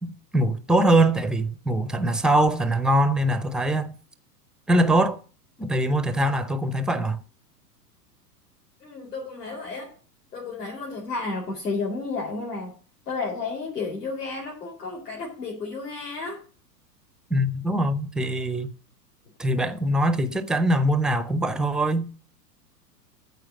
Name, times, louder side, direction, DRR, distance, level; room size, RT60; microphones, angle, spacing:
voice 1, 0.0-3.9 4.7-5.2 5.6-7.2 17.3-18.7 19.4-22.1, right 1 dB, ahead, 0.6 m, -22 dB
voice 2, 8.8-9.9 10.3-12.7 13.1-16.4, left 3 dB, 70° left, 4.2 m, -32 dB
13.5 x 4.7 x 7.6 m
figure-of-eight pair, 95°, 49 cm